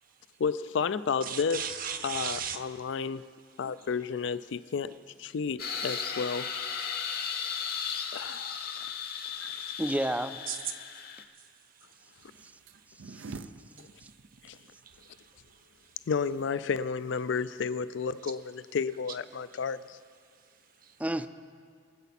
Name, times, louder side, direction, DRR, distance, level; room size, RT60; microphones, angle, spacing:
voice 1, 0.4-1.6 2.0-3.3 3.6-4.9 5.2-6.5 8.1-8.6 14.4-14.6 16.1-20.0, left 5 dB, 70° left, 15 dB, 0.4 m, -31 dB
voice 2, 1.2-2.9 6.7-8.2 8.7-8.9 9.4-9.6 10.5-13.2 13.7-16.0 18.2-18.3 20.4-21.0, right 7 dB, 50° right, 7 dB, 0.9 m, -42 dB
sound 1, 5.6-11.2, left 7 dB, 55° left, 1.0 m, -36 dB
voice 3, 9.8-10.4 13.1-13.3 13.7-13.9 21.0-21.3, right 1 dB, 10° right, 11 dB, 0.4 m, -31 dB
sound 2, 12.2-17.3, right 3 dB, 80° right, 0.5 m, -48 dB
23.5 x 8.1 x 4.2 m, 2.1 s
head